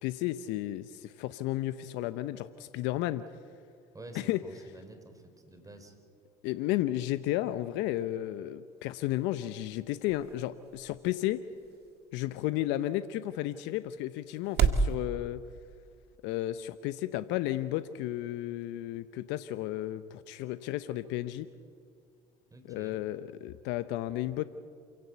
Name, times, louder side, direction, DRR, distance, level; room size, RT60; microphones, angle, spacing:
voice 1, 0.0-3.2 4.1-4.4 6.4-11.4 12.1-15.4 16.2-21.5 22.7-24.4, left 14 dB, 70° left, 13 dB, 0.8 m, -33 dB
voice 2, 3.9-6.0 22.5-23.0, right 2 dB, 15° right, 6 dB, 4.9 m, -49 dB
sound 1, 8.7-14.9, right 6 dB, 55° right, 1.8 m, -35 dB
27.5 x 16.5 x 8.2 m, 2.3 s
hypercardioid pair, 65°, 19 cm